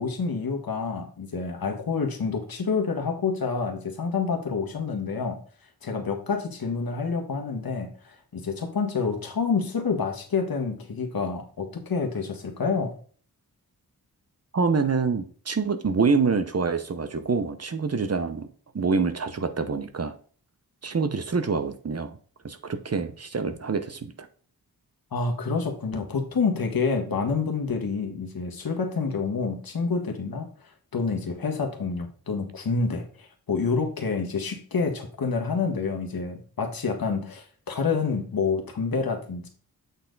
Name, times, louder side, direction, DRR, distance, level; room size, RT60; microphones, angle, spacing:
voice 1, 0.0-5.4 5.8-12.9 25.1-30.5 30.9-39.5, left 4 dB, 70° left, 4 dB, 1.5 m, -28 dB
voice 2, 14.5-18.5 18.7-20.1 20.8-22.2 22.4-24.3, right 4 dB, 40° right, 9 dB, 0.8 m, -26 dB
8.0 x 4.4 x 3.9 m, 0.43 s
wide cardioid pair, 95°, 37 cm